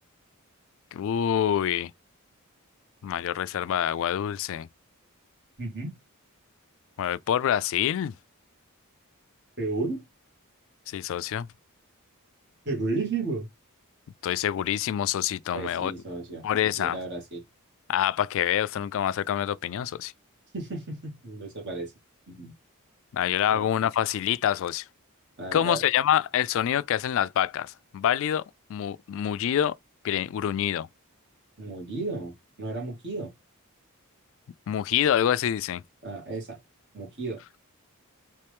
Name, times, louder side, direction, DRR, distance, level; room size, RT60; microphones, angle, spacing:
voice 1, 0.9-1.9 3.0-4.7 7.0-8.1 10.9-11.5 14.2-15.9 16.4-17.0 17.9-20.1 23.1-24.8 25.5-28.4 28.7-29.8 30.0-30.9 34.7-35.8, left 10 dB, 60° left, 0.3 m, -26 dB
voice 2, 5.6-6.0 9.6-10.1 12.7-13.5 15.5-16.4 16.8-17.4 20.5-21.9 22.3-22.5 23.5-23.7 25.4-25.8 31.6-33.3 36.0-36.6 36.9-37.4, right 3 dB, 50° right, 2.3 m, -33 dB
4.4 x 3.1 x 3.4 m
head